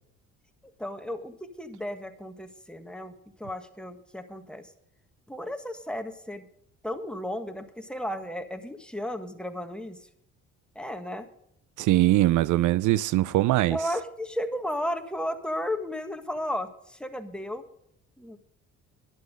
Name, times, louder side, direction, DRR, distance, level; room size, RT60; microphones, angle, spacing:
voice 1, 0.8-4.7 5.3-6.5 6.8-10.0 10.7-11.3 13.7-17.6 18.2-18.4, left 1 dB, 5° left, 1.7 m, -34 dB
voice 2, 11.8-13.8, right 16 dB, 70° right, 0.5 m, -22 dB
11.5 x 10.5 x 5.2 m
supercardioid pair, 75°, 32 cm